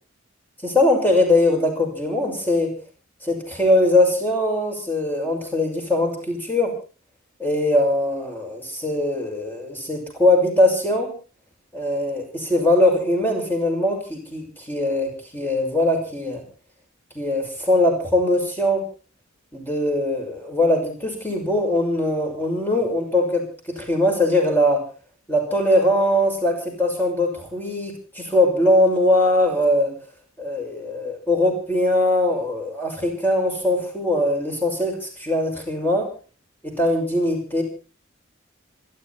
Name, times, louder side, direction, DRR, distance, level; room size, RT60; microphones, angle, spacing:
voice 1, 0.6-2.7 3.2-6.7 7.4-11.1 11.7-16.4 17.1-18.8 19.5-24.8 25.3-29.9 30.4-36.1 36.6-37.6, left 1 dB, 10° left, 1 dB, 6.4 m, -21 dB
26.0 x 11.5 x 4.3 m, 0.37 s
head